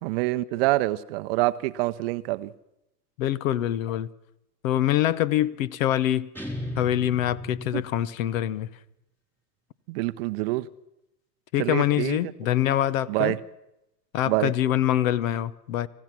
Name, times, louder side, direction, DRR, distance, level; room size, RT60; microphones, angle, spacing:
voice 1, 0.0-2.5 7.7-7.8 9.9-10.7 11.6-12.2 13.1-13.4 14.3-14.5, right 19 dB, 40° right, 0.7 m, -26 dB
voice 2, 3.2-4.1 4.6-6.3 6.8-8.7 11.5-13.4 14.1-15.9, left 12 dB, 50° left, 1.1 m, -24 dB
sound 1, 6.3-8.4, equal, 5° left, 4.0 m, -35 dB
27.5 x 15.5 x 6.1 m
hypercardioid pair, 115°, 49 cm